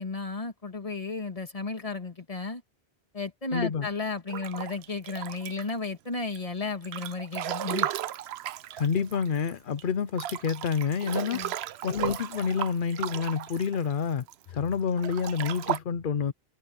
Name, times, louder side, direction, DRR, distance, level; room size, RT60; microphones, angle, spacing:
voice 1, 0.0-2.6 3.1-7.9 11.3-11.5, left 3 dB, 35° left, 1.9 m, -33 dB
voice 2, 3.5-3.9 8.8-11.4 11.8-16.3, left 6 dB, 60° left, 0.9 m, -28 dB
Breathing / Bathtub (filling or washing) / Splash splatter, 4.3-5.9 6.3-9.5 9.8-9.9 10.2-14.3 14.9-15.8, right 12 dB, 90° right, 0.8 m, -35 dB
omnidirectional pair, 1.0 m